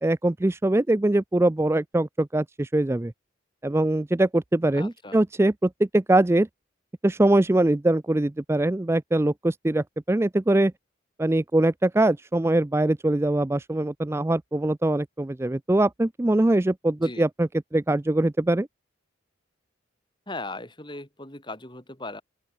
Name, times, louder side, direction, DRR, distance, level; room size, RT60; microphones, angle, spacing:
voice 1, 0.0-3.1 3.6-6.5 7.0-10.7 11.2-18.7, right 1 dB, 15° right, 0.4 m, -22 dB
voice 2, 4.7-5.2 17.0-17.3 20.3-22.2, left 2 dB, 25° left, 4.5 m, -38 dB
open air
head